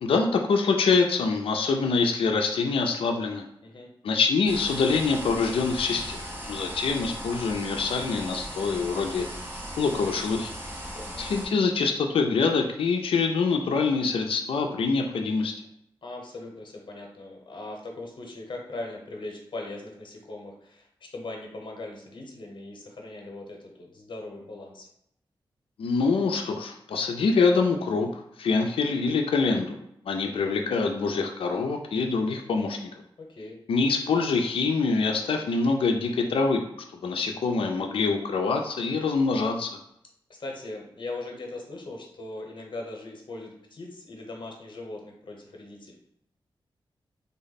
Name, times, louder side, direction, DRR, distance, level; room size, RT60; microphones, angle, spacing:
voice 1, 0.0-3.5 4.0-6.2 6.5-9.3 9.8-10.5 11.2-15.5 25.8-28.1 28.4-32.9 33.7-36.6 36.9-39.7, left 4 dB, 85° left, 3 dB, 0.4 m, -25 dB
sound 1, 4.5-11.5, equal, 25° right, 0.9 m, -38 dB
voice 2, 16.0-24.9 33.2-33.6 40.4-45.9, left 2 dB, 60° left, 0 dB, 0.9 m, -40 dB
3.4 x 2.1 x 4.0 m, 0.76 s
wide cardioid pair, 80°, 9 cm